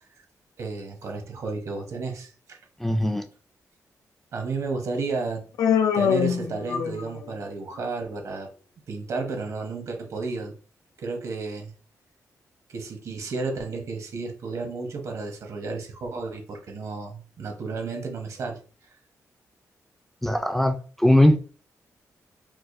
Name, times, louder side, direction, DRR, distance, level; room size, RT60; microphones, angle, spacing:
voice 1, 0.6-2.6 4.3-5.4 5.9-8.5 8.9-10.5 11.0-11.7 12.7-18.6, right 3 dB, 65° right, 0.8 m, -32 dB
voice 2, 2.8-3.2 20.2-21.4, left 1 dB, 5° left, 0.3 m, -20 dB
Human voice, 5.6-7.3, left 7 dB, 80° left, 0.4 m, -23 dB
4.6 x 2.0 x 2.5 m
wide cardioid pair, 120°, 6 cm